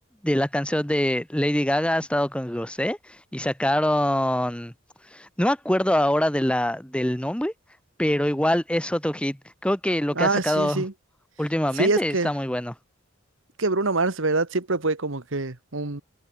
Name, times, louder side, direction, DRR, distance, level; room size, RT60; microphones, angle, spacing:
voice 1, 0.2-4.7 5.1-7.5 8.0-9.4 9.6-10.8 11.4-12.7, left 1 dB, 5° left, 1.2 m, -24 dB
voice 2, 10.1-10.9 11.7-12.3 13.6-16.0, right 3 dB, 65° right, 1.6 m, -25 dB
head